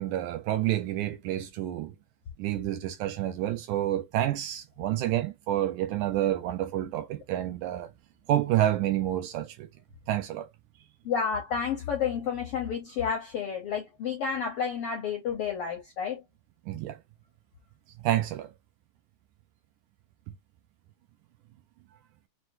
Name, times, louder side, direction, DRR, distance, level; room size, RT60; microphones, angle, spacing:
voice 1, 0.0-1.9 2.4-7.9 8.3-9.7 10.1-10.5 16.7-17.0 18.0-18.5, right 13 dB, 80° right, 1.9 m, -29 dB
voice 2, 11.0-16.2, left 7 dB, 75° left, 1.3 m, -30 dB
6.1 x 2.2 x 2.6 m
omnidirectional pair, 3.8 m